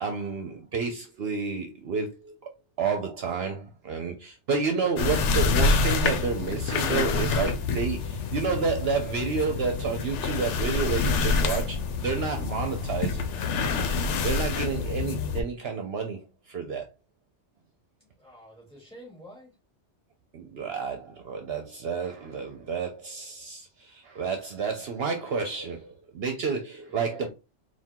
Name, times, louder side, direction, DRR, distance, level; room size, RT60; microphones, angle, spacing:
voice 1, 0.0-2.5 2.8-13.2 14.2-16.9 20.3-27.3, right 5 dB, 65° right, 0.9 m, -30 dB
sound 1, 5.0-15.4, left 4 dB, 85° left, 0.9 m, -27 dB
voice 2, 18.0-19.6 26.9-27.3, equal, 5° left, 2.5 m, -49 dB
4.4 x 2.4 x 3.6 m
omnidirectional pair, 1.2 m